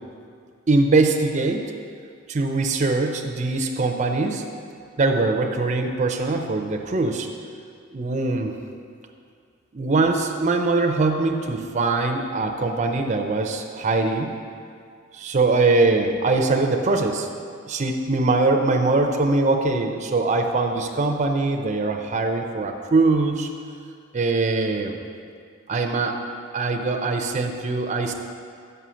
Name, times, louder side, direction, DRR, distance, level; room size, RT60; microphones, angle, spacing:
voice 1, 0.7-1.7 2.3-4.4 5.0-7.3 7.9-8.5 9.7-14.3 15.1-17.3 17.6-23.5 24.1-25.0 25.7-26.2 26.5-28.1, right 3 dB, 35° right, 3 dB, 0.5 m, -22 dB
5.7 x 5.6 x 6.1 m, 2.3 s
head